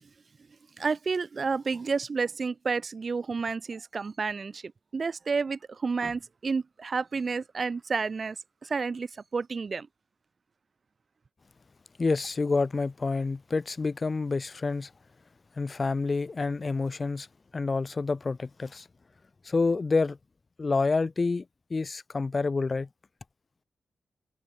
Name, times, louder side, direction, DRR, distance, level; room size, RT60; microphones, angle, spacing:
voice 1, 0.8-8.4 8.6-9.9, right 4 dB, 50° right, 0.7 m, -30 dB
voice 2, 12.0-14.9 15.6-17.3 17.5-18.9 19.4-20.2 20.6-21.4 21.7-22.9, left 4 dB, 40° left, 1.4 m, -28 dB
cardioid pair, 65°, 0 cm